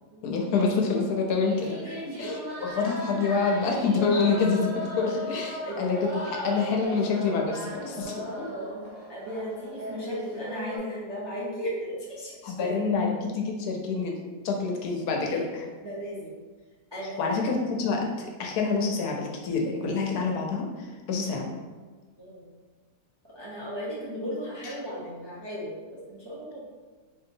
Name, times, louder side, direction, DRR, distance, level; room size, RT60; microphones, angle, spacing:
voice 1, 0.2-1.7 2.2-8.5 12.4-14.2 14.4-15.7 17.2-21.5 24.6-24.7, left 4 dB, 75° left, 1 dB, 1.1 m, -27 dB
sound 1, 1.4-10.8, equal, 80° right, 1.5 m, -37 dB
voice 2, 1.8-2.6 5.0-5.2 5.6-5.8 8.4-12.7 15.2-15.4 15.8-16.3 16.9-17.5 22.2-22.5 23.3-26.6, equal, 30° right, -8 dB, 0.4 m, -36 dB
4.1 x 2.7 x 2.6 m, 1.4 s
omnidirectional pair, 1.7 m